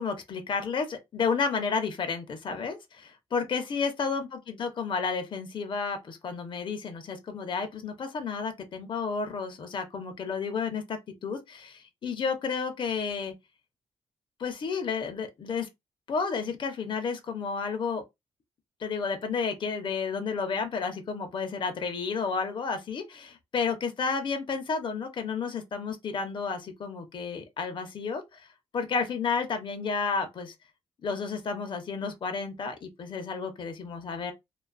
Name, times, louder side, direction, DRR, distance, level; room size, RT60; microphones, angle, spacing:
voice 1, 0.0-13.3 14.4-15.7 16.1-18.0 18.8-28.5 28.7-30.5 31.0-34.3, left 5 dB, 40° left, 0.6 m, -31 dB
2.4 x 2.2 x 2.2 m
cardioid pair, 125°, 12 cm